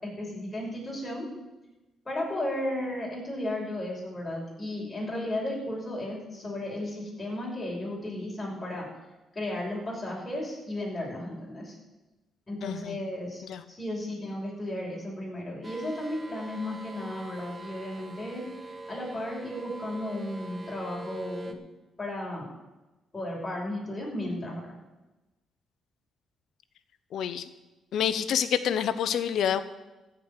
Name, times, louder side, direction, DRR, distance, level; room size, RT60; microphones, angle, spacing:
voice 1, 0.0-1.3 2.1-8.9 9.3-11.8 12.5-18.4 18.9-21.6 22.0-22.5 23.1-24.6, left 1 dB, 20° left, -3 dB, 5.7 m, -34 dB
voice 2, 12.6-13.0 13.4-13.6 27.1-27.5 27.9-29.6, left 9 dB, 70° left, 13 dB, 0.8 m, -27 dB
sound 1, 15.6-21.5, right 2 dB, 25° right, 1.4 m, -43 dB
14.5 x 5.3 x 9.0 m, 1.1 s
cardioid pair, 90°, 0 cm